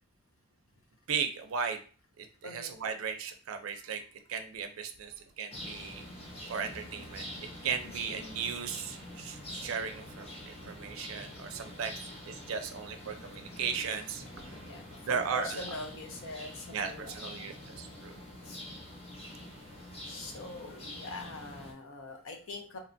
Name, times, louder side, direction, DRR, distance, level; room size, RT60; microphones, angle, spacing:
voice 1, 1.1-1.8 2.2-4.0 4.3-6.0 6.5-14.6 15.0-15.8 16.7-18.1, right 6 dB, 75° right, 7 dB, 0.4 m, -36 dB
voice 2, 2.4-2.7 9.5-9.6 14.4-18.0 18.4-18.6 20.0-22.8, left 2 dB, 70° left, 3 dB, 0.6 m, -44 dB
sound 1, 5.5-21.7, left 1 dB, 30° left, 0.7 m, -46 dB
2.9 x 2.2 x 2.5 m, 0.38 s
head